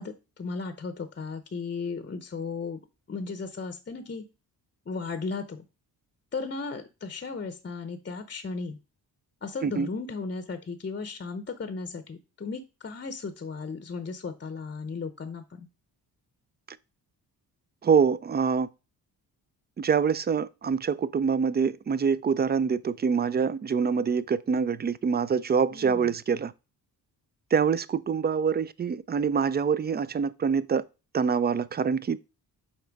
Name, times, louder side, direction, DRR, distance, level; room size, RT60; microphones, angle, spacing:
voice 1, 0.0-2.8 3.1-4.3 4.9-5.6 6.3-8.8 9.4-15.7 25.7-26.1, left 4 dB, 30° left, 0.7 m, -35 dB
voice 2, 17.8-18.7 19.8-26.5 27.5-30.8 31.1-32.2, right 6 dB, 25° right, 0.4 m, -25 dB
5.9 x 4.2 x 5.2 m
cardioid pair, 85°, 40 cm